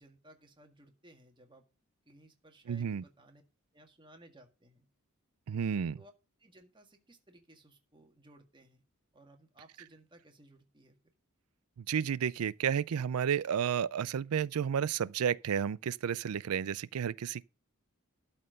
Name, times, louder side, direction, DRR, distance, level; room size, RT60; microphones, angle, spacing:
voice 1, 0.0-1.6 2.1-3.4 3.7-4.9 6.0-6.1 6.4-8.8 9.1-11.0, right 1 dB, 20° right, 1.7 m, -59 dB
voice 2, 2.7-3.0 5.5-6.0 11.8-17.4, right 8 dB, 85° right, 0.4 m, -32 dB
12.5 x 4.4 x 6.4 m
head